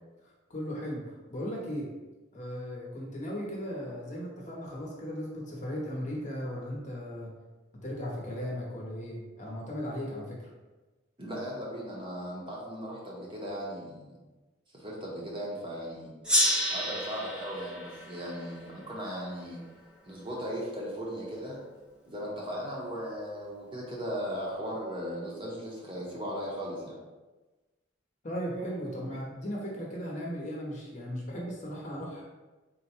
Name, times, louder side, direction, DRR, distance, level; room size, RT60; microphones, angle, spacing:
voice 1, 0.5-1.9 2.3-7.3 7.8-10.5 28.2-32.2, equal, 35° left, -3 dB, 0.8 m, -37 dB
voice 2, 11.2-14.2 14.7-16.1 16.7-19.6 20.1-21.6 22.1-27.0, equal, 25° right, -4 dB, 0.8 m, -37 dB
Gong, 16.2-19.4, equal, 5° right, 0.4 m, -30 dB
3.8 x 2.2 x 4.3 m, 1.2 s
head